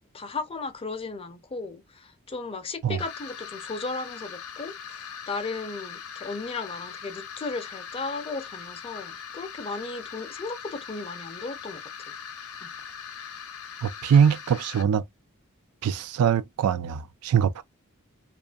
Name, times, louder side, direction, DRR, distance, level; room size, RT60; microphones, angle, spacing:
voice 1, 0.1-12.1 12.6-12.7, left 3 dB, 25° left, 0.5 m, -35 dB
sound 1, 3.0-14.8, left 7 dB, 70° left, 0.7 m, -41 dB
voice 2, 13.8-15.0 15.8-17.6, right 7 dB, 80° right, 0.3 m, -22 dB
2.5 x 2.5 x 2.2 m
head